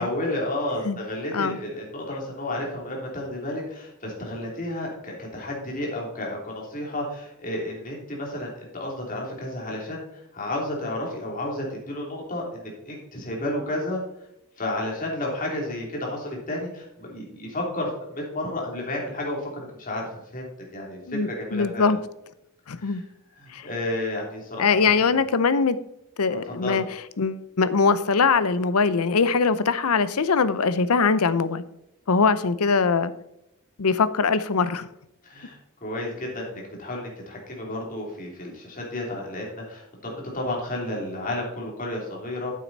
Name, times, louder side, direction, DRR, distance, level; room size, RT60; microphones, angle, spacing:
voice 1, 0.0-14.0 14.6-20.0 20.3-21.9 22.8-23.0 23.3-24.7 26.5-26.8 35.2-42.5, left 1 dB, 40° left, -1 dB, 3.0 m, -32 dB
voice 2, 21.1-22.0 22.7-23.0 23.5-23.7 24.6-25.8 26.2-26.8 27.2-31.6 32.1-33.1 33.8-34.9, left 5 dB, 80° left, 14 dB, 0.7 m, -22 dB
9.3 x 7.6 x 4.1 m, 0.84 s
head